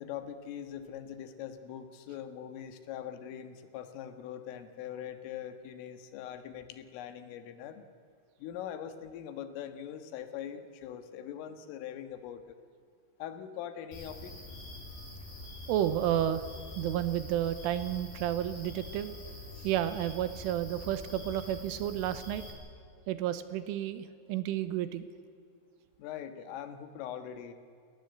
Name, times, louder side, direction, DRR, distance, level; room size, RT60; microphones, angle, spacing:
voice 1, 0.0-7.8 8.4-12.4 13.2-14.3 26.0-27.5, left 9 dB, 80° left, 9 dB, 4.1 m, -42 dB
sound 1, 13.9-22.5, left 1 dB, 50° left, 9.3 m, -45 dB
voice 2, 15.7-16.4 16.8-19.1 19.6-22.4 23.1-25.1, right 11 dB, 85° right, 12 dB, 3.6 m, -31 dB
29.0 x 19.0 x 8.2 m, 2.4 s
omnidirectional pair, 5.7 m